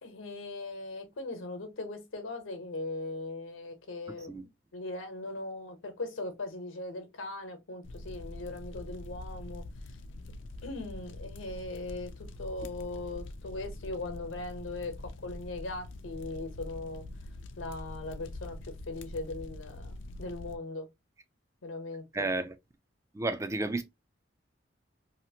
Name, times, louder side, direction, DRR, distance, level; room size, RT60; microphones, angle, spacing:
voice 1, 0.0-4.4 4.7-9.6 10.6-17.0 17.6-18.6 18.9-20.9 21.6-22.3, left 2 dB, 85° left, 0.9 m, -39 dB
sound 1, 7.8-20.6, left 2 dB, 70° left, 0.4 m, -44 dB
voice 2, 22.1-22.5 23.1-23.8, right 2 dB, 15° right, 0.3 m, -31 dB
2.8 x 2.4 x 2.7 m
head